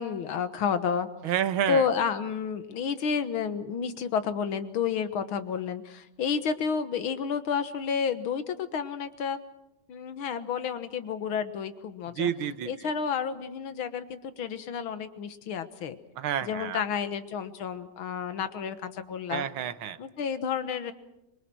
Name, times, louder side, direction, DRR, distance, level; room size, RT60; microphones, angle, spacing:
voice 1, 0.0-1.1 1.7-9.4 9.9-12.3 12.7-16.0 16.4-19.5 20.0-20.9, left 6 dB, 80° left, 11 dB, 2.1 m, -30 dB
voice 2, 1.2-1.8 12.2-12.7 16.2-16.8 19.3-20.0, right 10 dB, 85° right, 12 dB, 1.8 m, -29 dB
25.5 x 23.0 x 6.2 m, 0.88 s
omnidirectional pair, 2.2 m